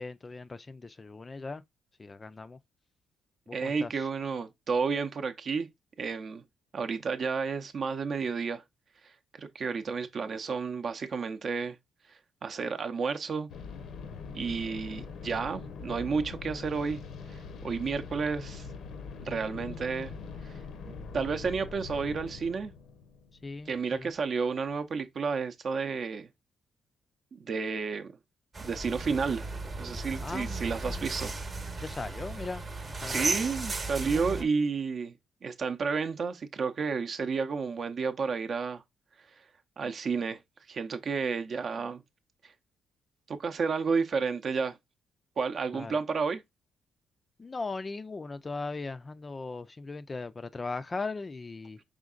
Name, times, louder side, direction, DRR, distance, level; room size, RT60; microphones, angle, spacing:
voice 1, 0.0-1.6 2.0-2.6 3.5-4.1 23.4-24.1 30.2-30.7 31.8-33.5 34.0-34.5 45.7-46.0 47.4-51.8, left 3 dB, 25° left, 0.3 m, -39 dB
voice 2, 3.5-5.7 6.0-6.4 6.7-8.6 9.3-11.8 12.4-13.5 14.3-17.0 17.3-18.7 19.2-20.1 20.4-20.5 21.1-22.7 23.7-26.3 27.4-28.1 28.6-29.5 29.8-31.3 33.0-35.1 35.4-38.8 39.8-40.4 40.7-42.0 42.4-42.5 43.3-44.8 45.4-46.4, right 5 dB, 50° right, 0.6 m, -31 dB
sound 1, 13.5-24.3, left 5 dB, 75° left, 0.7 m, -43 dB
sound 2, 28.5-34.4, right 3 dB, 35° right, 0.9 m, -35 dB
5.0 x 3.6 x 2.4 m
cardioid pair, 100°, 0 cm